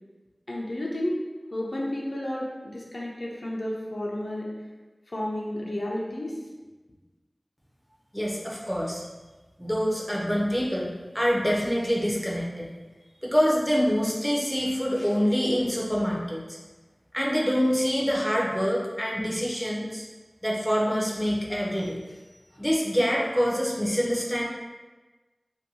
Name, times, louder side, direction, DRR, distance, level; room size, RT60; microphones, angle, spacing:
voice 1, 0.5-1.2 1.5-4.5 5.1-6.4, left 1 dB, 75° left, -4 dB, 0.4 m, -31 dB
voice 2, 8.1-9.0 9.6-10.9 11.1-12.7 13.2-16.6 17.1-20.0 20.4-22.0 22.6-24.5, equal, 5° left, -4 dB, 0.5 m, -25 dB
2.6 x 2.2 x 2.7 m, 1.2 s
wide cardioid pair, 45°, 0 cm